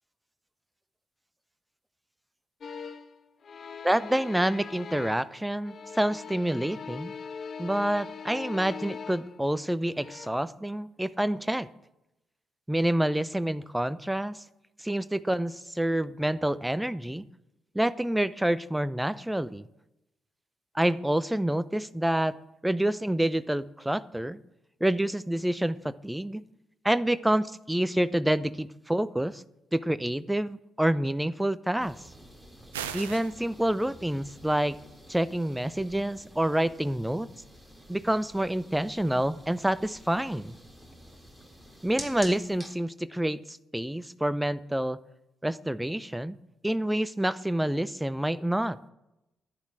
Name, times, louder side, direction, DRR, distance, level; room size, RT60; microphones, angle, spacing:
sound 1, 2.6-3.2 3.4-5.4 5.6-9.4 9.9-10.3, left 6 dB, 45° left, 0.9 m, -41 dB
voice 1, 3.8-7.1 7.6-11.7 12.7-14.4 14.8-17.2 17.7-19.6 20.7-22.4 22.6-24.4 24.8-26.4 26.8-29.4 29.7-32.0 32.9-34.8 35.1-37.3 37.9-40.5 41.8-45.0 45.4-46.4 46.6-48.8, right 1 dB, 5° right, 15 dB, 0.7 m, -28 dB
sound 2, 31.8-42.8, equal, 10° left, 3.6 m, -48 dB
sound 3, 32.7-33.3, right 9 dB, 80° right, 0.7 m, -36 dB
11.0 x 9.7 x 8.1 m, 0.91 s
figure-of-eight pair, 40°, 0 cm